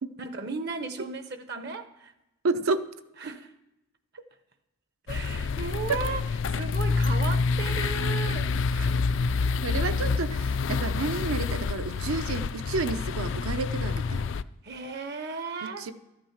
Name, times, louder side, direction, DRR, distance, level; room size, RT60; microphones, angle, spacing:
voice 1, 0.2-2.1 3.2-3.5 5.1-6.2 6.5-9.1 14.6-15.9, right 4 dB, 50° right, 0.7 m, -36 dB
voice 2, 2.4-2.9 5.9-6.0 9.6-14.2 15.6-15.9, right 3 dB, 85° right, 0.7 m, -30 dB
sound 1, 5.1-14.4, left 4 dB, 60° left, 0.4 m, -27 dB
14.0 x 8.8 x 5.7 m
head